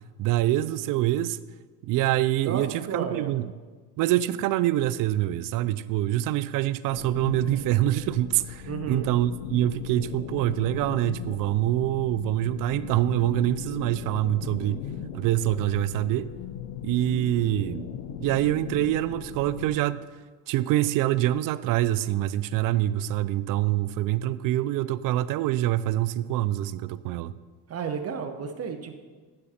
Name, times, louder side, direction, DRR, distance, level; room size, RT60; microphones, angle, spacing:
voice 1, 0.2-1.4 1.8-3.5 4.0-14.8 15.1-16.3 16.8-17.9 18.2-20.0 20.5-27.3, right 14 dB, 55° right, 0.5 m, -25 dB
voice 2, 2.4-3.4 8.7-9.1 27.7-29.0, right 6 dB, 40° right, 0.9 m, -32 dB
sound 1, 6.9-19.8, left 8 dB, 90° left, 0.7 m, -38 dB
9.7 x 6.4 x 4.2 m
supercardioid pair, 90°, 39 cm